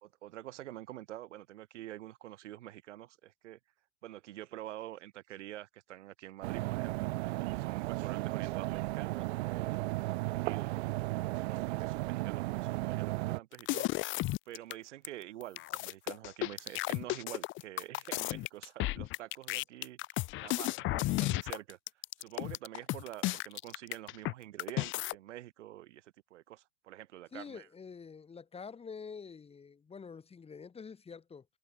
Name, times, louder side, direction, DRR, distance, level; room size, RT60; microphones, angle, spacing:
voice 1, 0.0-3.6 4.0-9.8 10.2-20.0 20.4-21.8 22.2-27.7, right 14 dB, 85° right, 1.7 m, -47 dB
sound 1, 6.4-13.4, right 21 dB, 65° right, 1.0 m, -35 dB
sound 2, 13.5-14.7 15.0-15.1 15.4-24.3 24.6-25.1, left 19 dB, 35° left, 0.8 m, -34 dB
voice 2, 27.3-31.5, left 5 dB, 15° left, 5.3 m, -47 dB
supercardioid pair, 130°, 35 cm